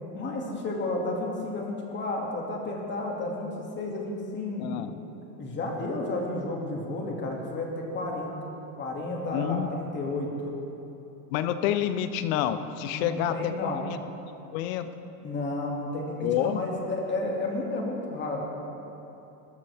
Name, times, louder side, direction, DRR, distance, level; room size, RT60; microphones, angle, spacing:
voice 1, 0.1-4.9 5.4-8.3 8.8-10.5 12.9-13.8 15.2-18.4, left 2 dB, 20° left, -1 dB, 2.4 m, -32 dB
voice 2, 4.6-4.9 9.3-9.7 11.3-14.0 14.5-14.9 16.2-16.6, left 10 dB, 55° left, 11 dB, 0.9 m, -28 dB
21.0 x 12.0 x 3.6 m, 2.9 s
supercardioid pair, 140°, 49 cm